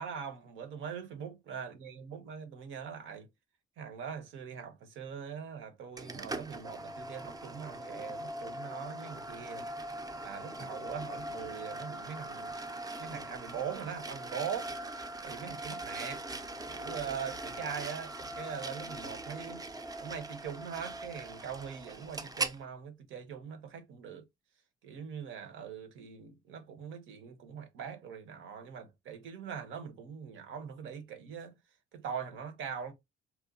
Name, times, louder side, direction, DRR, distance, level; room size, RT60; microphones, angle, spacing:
voice 1, 0.0-3.3 3.8-9.6 10.2-12.5 13.0-14.7 15.2-16.2 16.7-19.7 20.0-24.2 24.8-31.5 31.9-32.9, right 7 dB, 80° right, 0.8 m, -42 dB
sound 1, 6.0-22.6, right 2 dB, 20° right, 0.4 m, -41 dB
2.9 x 2.2 x 2.4 m
cardioid pair, 90°, 20 cm